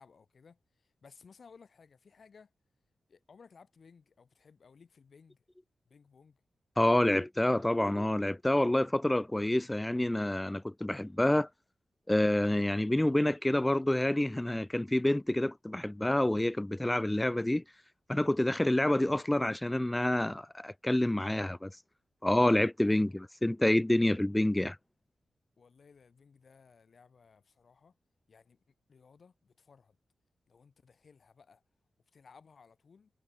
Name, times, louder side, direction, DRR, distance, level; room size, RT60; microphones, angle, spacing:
voice 1, 0.0-2.5 3.1-5.4 5.8-6.4 22.8-23.2 25.6-28.0 28.3-30.0 30.5-31.6 32.1-33.1, left 5 dB, 45° left, 7.2 m, -59 dB
voice 2, 6.8-11.5 12.1-17.6 18.1-21.7 22.2-23.1 23.4-24.8, left 1 dB, 10° left, 0.6 m, -28 dB
wide cardioid pair, 165°, 0 cm